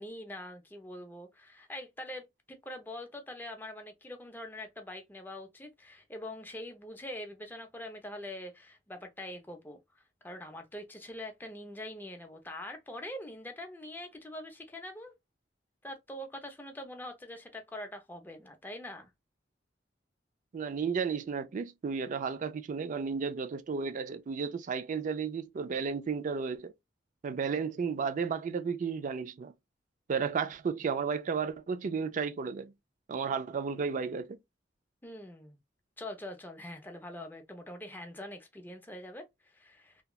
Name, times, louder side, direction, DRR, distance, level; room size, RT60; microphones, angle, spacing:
voice 1, 0.0-2.3 2.6-15.1 15.8-19.1 35.0-35.6 36.0-40.0, left 1 dB, 10° left, 0.5 m, -44 dB
voice 2, 20.5-26.7 27.2-29.5 30.1-32.7 33.1-34.4, right 5 dB, 45° right, 0.3 m, -33 dB
2.8 x 2.2 x 2.3 m
head